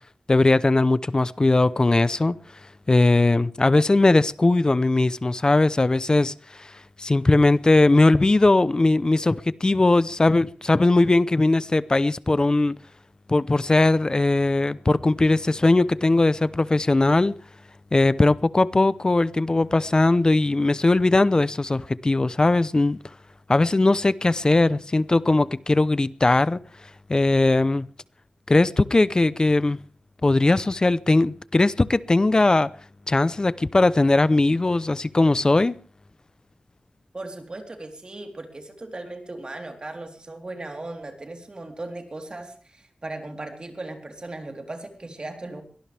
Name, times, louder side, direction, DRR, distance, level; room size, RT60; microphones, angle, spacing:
voice 1, 0.3-2.4 2.9-6.7 7.0-12.8 13.3-17.3 17.9-23.0 23.5-26.6 27.1-27.9 28.5-29.8 30.2-32.7 33.1-35.8, left 2 dB, 30° left, 0.7 m, -19 dB
voice 2, 37.1-45.6, right 2 dB, 40° right, 3.7 m, -37 dB
23.0 x 18.0 x 3.5 m
wide cardioid pair, 90°, 2 cm